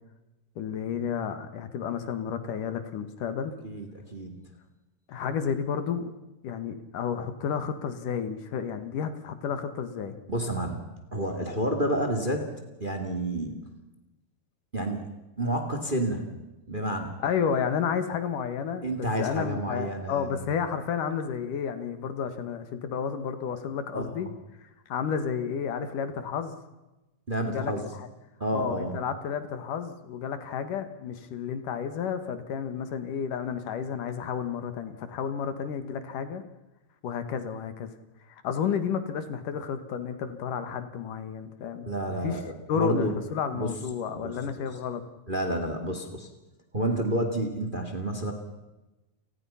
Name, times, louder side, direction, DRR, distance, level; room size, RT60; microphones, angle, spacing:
voice 1, 0.6-3.5 5.1-6.1 6.4-10.2 17.2-18.9 19.2-24.3 24.6-26.6 27.4-28.1 28.5-36.4 37.0-37.9 38.3-42.4 42.7-45.0, left 7 dB, 70° left, 10 dB, 3.0 m, -31 dB
voice 2, 3.6-4.4 10.3-12.5 12.8-13.7 14.7-15.1 15.4-16.3 16.7-17.2 18.8-20.4 23.9-24.3 27.3-27.9 28.4-29.0 41.9-43.2 43.5-43.7 44.1-44.7 45.3-46.3 46.7-48.3, right 1 dB, 15° right, 6 dB, 2.1 m, -30 dB
30.0 x 19.5 x 5.7 m, 1.0 s
omnidirectional pair, 4.0 m